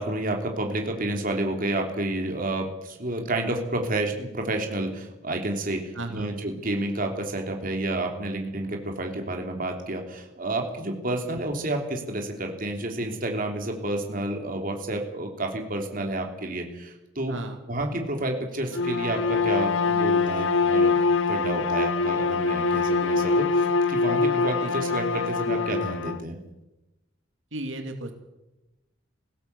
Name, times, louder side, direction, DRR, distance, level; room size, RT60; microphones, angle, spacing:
voice 1, 0.0-5.8 6.1-17.4 17.7-21.0 21.3-26.4, right 1 dB, 45° right, 3 dB, 3.2 m, -30 dB
voice 2, 5.9-6.3 17.3-17.6 24.6-24.7 27.5-28.1, right 2 dB, 85° right, 5 dB, 2.5 m, -34 dB
Bowed string instrument, 18.7-26.2, left 4 dB, 85° left, 0.8 m, -24 dB
19.5 x 16.5 x 8.2 m, 0.98 s
head